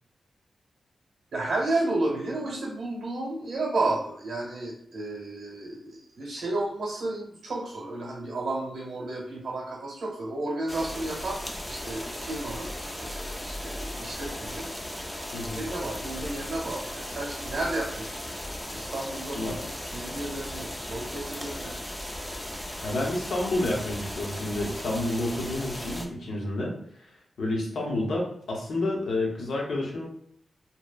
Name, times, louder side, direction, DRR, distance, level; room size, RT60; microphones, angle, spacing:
voice 1, 1.3-12.7 13.0-14.7 15.5-18.3 18.7-19.5 19.9-21.7, right 2 dB, 70° right, -2 dB, 0.9 m, -32 dB
sound 1, 10.7-26.1, left 1 dB, 10° left, 0.3 m, -37 dB
voice 2, 22.8-26.7 27.4-30.0, left 1 dB, 80° left, -2 dB, 0.7 m, -29 dB
2.8 x 2.1 x 2.3 m, 0.68 s
wide cardioid pair, 120°, 0 cm